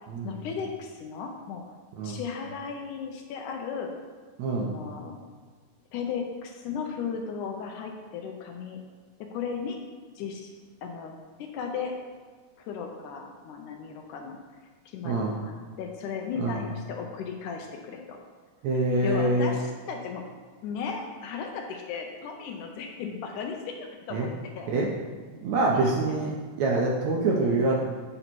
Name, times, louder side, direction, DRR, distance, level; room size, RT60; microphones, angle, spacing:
voice 1, 0.2-1.6 2.0-3.9 4.6-5.2 5.9-8.8 9.2-9.8 10.2-10.5 10.8-12.0 12.6-14.4 14.9-18.2 18.7-20.2 20.6-24.3 24.6-24.7 25.7-26.2, left 6 dB, 75° left, 3 dB, 2.0 m, -36 dB
voice 2, 4.4-4.8 15.1-15.4 16.4-16.6 18.6-19.5 24.1-24.3 24.7-24.9 25.4-26.3 26.6-27.8, right 2 dB, 75° right, -3 dB, 1.7 m, -25 dB
8.7 x 3.9 x 4.5 m, 1.5 s
omnidirectional pair, 3.9 m